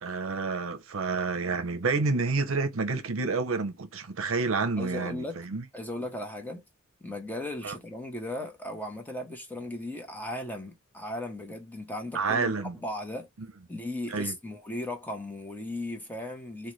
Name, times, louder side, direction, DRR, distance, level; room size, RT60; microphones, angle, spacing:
voice 1, 0.0-5.6 7.6-7.7 12.1-12.8 14.1-14.3, right 4 dB, 70° right, 0.6 m, -29 dB
voice 2, 4.8-5.4 5.7-6.6 7.0-13.3 13.7-16.7, left 1 dB, 10° left, 0.7 m, -36 dB
3.9 x 2.2 x 3.1 m
head